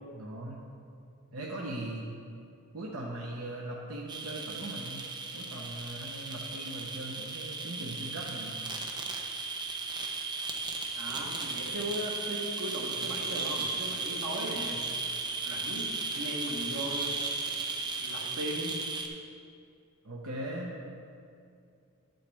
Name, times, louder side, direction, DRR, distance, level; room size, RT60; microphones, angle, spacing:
voice 1, 0.1-0.6 1.3-2.0 2.7-5.0 5.3-8.6 20.0-20.7, right 1 dB, 65° right, -3 dB, 0.9 m, -39 dB
sound 1, 4.1-19.1, right 4 dB, 20° right, 0.6 m, -35 dB
voice 2, 10.9-14.8 15.5-17.1 18.0-18.7, right 1 dB, 90° right, -2 dB, 1.6 m, -37 dB
10.5 x 7.8 x 3.5 m, 2.4 s
head